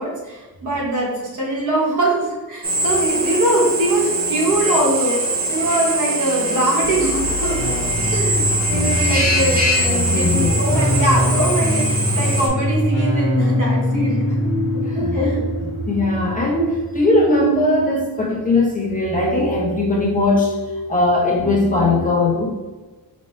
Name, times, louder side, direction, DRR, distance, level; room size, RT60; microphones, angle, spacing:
voice 1, 0.0-7.7 8.0-14.4 15.1-15.4, right 1 dB, 55° right, -4 dB, 1.2 m, -22 dB
Drill, 2.6-12.5, right 1 dB, 25° right, 0.7 m, -22 dB
sound 1, 6.8-18.3 19.0-22.0, equal, 40° left, 1.1 m, -23 dB
voice 2, 9.8-10.6 14.8-15.5 15.9-20.5 20.9-22.5, left 2 dB, 25° left, -5 dB, 0.7 m, -19 dB
5.1 x 2.2 x 3.1 m, 1.2 s
wide cardioid pair, 175°, 36 cm